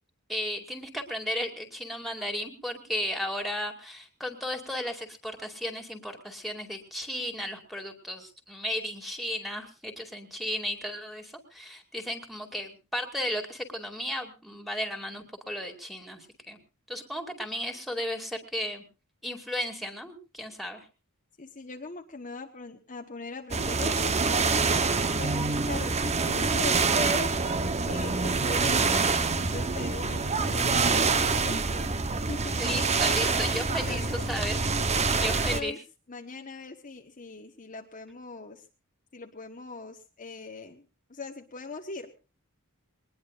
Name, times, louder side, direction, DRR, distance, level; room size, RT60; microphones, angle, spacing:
voice 1, 0.3-16.6 16.9-18.8 19.2-20.9 32.6-34.7 35.2-35.7, equal, ahead, 2 dB, 2.4 m, -34 dB
voice 2, 21.4-24.7 25.2-32.6 33.3-34.3 34.9-35.8 36.1-38.6 39.1-40.8 41.1-42.1, left 3 dB, 35° left, 3 dB, 1.2 m, -41 dB
sound 1, 23.5-35.6, right 4 dB, 30° right, 0.9 m, -26 dB
22.0 x 19.5 x 2.5 m, 0.31 s
head